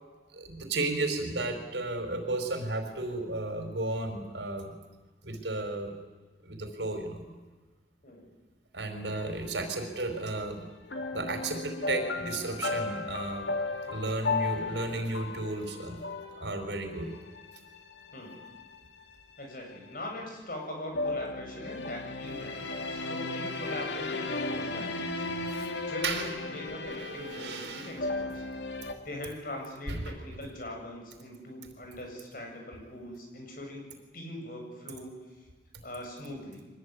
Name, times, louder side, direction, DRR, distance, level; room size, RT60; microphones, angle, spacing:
voice 1, 0.3-4.7 5.2-5.9 6.4-7.2 8.7-10.7 11.1-13.5 13.9-16.0 16.4-17.1 25.2-25.7 26.0-26.3 26.8-28.0 29.9-30.1, right 2 dB, 90° right, 6 dB, 4.7 m, -34 dB
sound 1, 9.1-10.1 10.8-19.0 20.9-28.9, left 3 dB, 85° left, 2.6 m, -35 dB
voice 2, 19.4-25.2 25.8-28.4 29.0-35.1 35.8-36.6, left 1 dB, 55° left, 1 dB, 7.7 m, -41 dB
24.5 x 19.5 x 9.8 m, 1.3 s
head